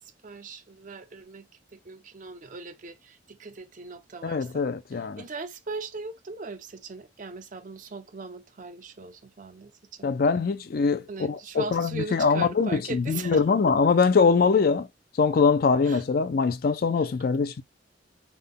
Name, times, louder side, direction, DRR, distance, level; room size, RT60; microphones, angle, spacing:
voice 1, 0.0-10.2 11.1-13.4 15.8-16.0 16.9-17.1, right 4 dB, 45° right, 0.5 m, -39 dB
voice 2, 4.2-5.2 10.0-14.9 15.2-17.6, left 5 dB, 50° left, 0.4 m, -23 dB
3.5 x 2.2 x 3.6 m
head